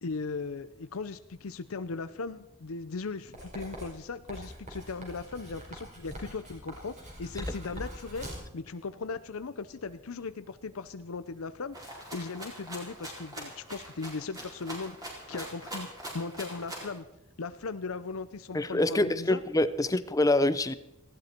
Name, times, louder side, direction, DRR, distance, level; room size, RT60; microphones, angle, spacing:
voice 1, 0.0-8.3 8.5-11.8 12.1-15.0 15.3-15.9 16.1-17.0 17.4-19.4, left 4 dB, 75° left, 12 dB, 0.6 m, -38 dB
Writing, 3.3-8.5, equal, 35° right, 5.1 m, -43 dB
Rattle (instrument), 11.7-17.0, right 1 dB, 15° right, 4.3 m, -42 dB
voice 2, 18.5-20.7, left 1 dB, 15° left, 14 dB, 0.6 m, -25 dB
19.0 x 16.0 x 4.5 m, 0.85 s
head